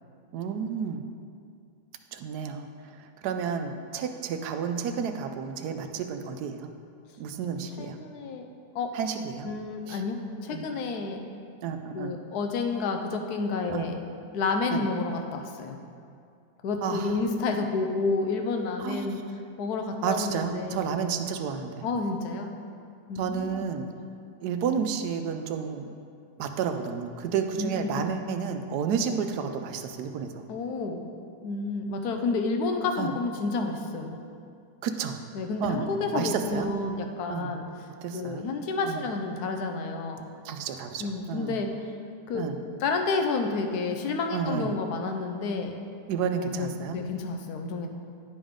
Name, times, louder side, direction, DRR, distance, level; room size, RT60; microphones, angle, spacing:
voice 1, 0.3-1.0 2.1-2.7 3.2-6.7 7.2-8.0 8.9-9.5 9.9-10.0 10.5-10.7 11.6-12.1 13.7-13.9 14.7-14.8 16.8-17.2 18.8-19.2 20.0-21.9 23.2-23.9 24.4-25.8 26.4-30.3 33.0-33.1 34.8-35.2 35.6-35.8 36.1-36.7 37.3-37.5 38.0-38.4 38.8-39.0 40.4-41.6 42.3-42.5 44.3-44.7 46.1-47.0, right 7 dB, 75° right, 7 dB, 1.1 m, -31 dB
voice 2, 7.8-8.5 8.7-8.9 9.4-11.2 11.9-14.0 14.3-15.8 16.6-21.1 21.8-22.5 23.1-23.7 27.6-28.1 30.5-31.0 31.4-34.2 35.3-40.3 41.0-41.7 42.3-42.4 42.8-45.8 46.4-47.9, left 3 dB, 75° left, 4 dB, 1.2 m, -30 dB
10.5 x 5.2 x 3.7 m, 2.3 s
omnidirectional pair, 1.7 m